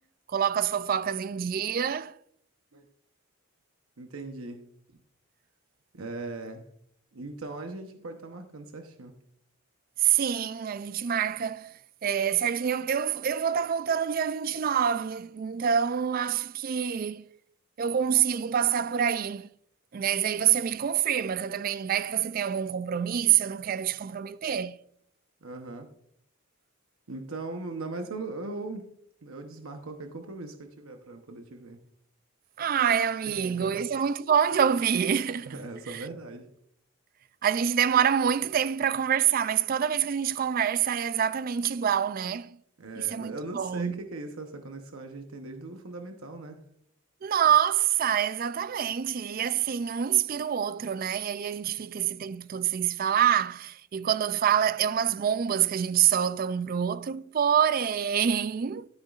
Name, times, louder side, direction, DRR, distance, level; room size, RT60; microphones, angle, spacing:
voice 1, 0.3-2.1 10.0-11.7 12.0-17.2 17.8-19.5 19.9-24.8 32.6-35.6 35.9-36.0 37.4-42.6 43.0-44.0 47.2-58.9, right 8 dB, 40° right, 0.3 m, -26 dB
voice 2, 4.0-4.6 5.9-6.7 7.1-9.1 25.4-25.9 27.1-28.9 29.2-31.8 33.2-33.8 35.5-36.5 42.8-46.6, right 2 dB, 80° right, 0.9 m, -39 dB
12.0 x 9.4 x 2.4 m
head